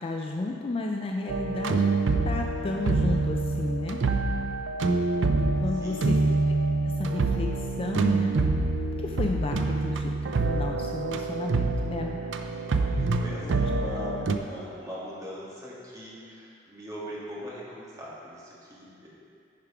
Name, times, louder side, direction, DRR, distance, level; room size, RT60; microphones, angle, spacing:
voice 1, 0.0-4.0 5.4-6.2 6.8-8.4 9.0-12.3 13.4-13.6, left 2 dB, 30° left, 1 dB, 0.4 m, -33 dB
sound 1, 1.3-14.4, right 3 dB, 80° right, 0.5 m, -26 dB
voice 2, 5.7-6.2 12.5-19.1, equal, 20° right, -7 dB, 1.8 m, -41 dB
10.0 x 4.9 x 4.8 m, 2.5 s
head